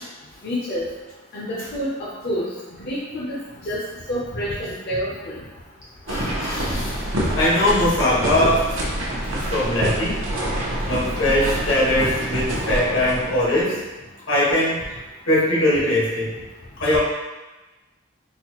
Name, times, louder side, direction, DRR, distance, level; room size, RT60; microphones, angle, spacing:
voice 1, 0.4-0.9 1.3-1.9 2.2-2.5 2.8-3.4 3.6-3.8 4.1-5.4, equal, 50° left, -8 dB, 0.5 m, -27 dB
voice 2, 6.1-7.0 7.3-8.7 9.2-10.2 10.8-13.8 14.3-14.8 15.3-16.3 16.8-17.0, left 1 dB, 75° left, -7 dB, 1.2 m, -21 dB
sound 1, 6.1-13.6, right 1 dB, 90° right, 0.7 m, -26 dB
4.0 x 2.2 x 2.9 m, 1.1 s
head